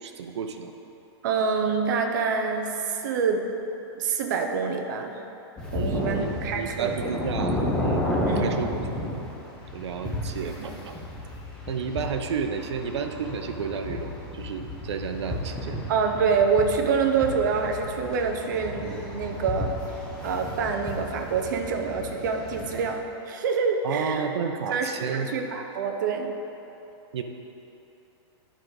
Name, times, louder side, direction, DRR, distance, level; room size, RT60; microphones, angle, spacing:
voice 1, 0.0-0.7 5.7-8.0 8.3-8.8 9.7-11.0 11.7-15.8 23.8-25.3 27.1-27.2, right 6 dB, 80° right, 6 dB, 0.8 m, -32 dB
voice 2, 1.2-3.5 3.9-5.2 5.7-7.1 8.3-8.6 10.6-10.7 15.9-19.7 20.2-23.0 23.3-24.3 24.7-26.3, right 5 dB, 45° right, 4 dB, 0.7 m, -26 dB
sound 1, 5.6-23.0, left 1 dB, 5° left, 0.8 m, -32 dB
10.5 x 5.0 x 4.7 m, 3.0 s
supercardioid pair, 170°, 14 cm